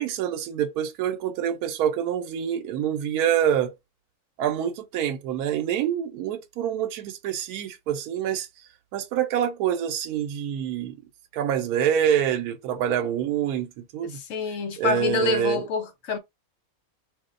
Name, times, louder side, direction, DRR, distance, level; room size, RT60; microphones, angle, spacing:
voice 1, 0.0-3.7 4.4-8.5 8.9-11.0 11.3-14.2 14.8-15.6, right 9 dB, 85° right, 1.1 m, -26 dB
voice 2, 14.1-16.2, left 4 dB, 65° left, 0.9 m, -27 dB
2.6 x 2.1 x 3.7 m
omnidirectional pair, 1.6 m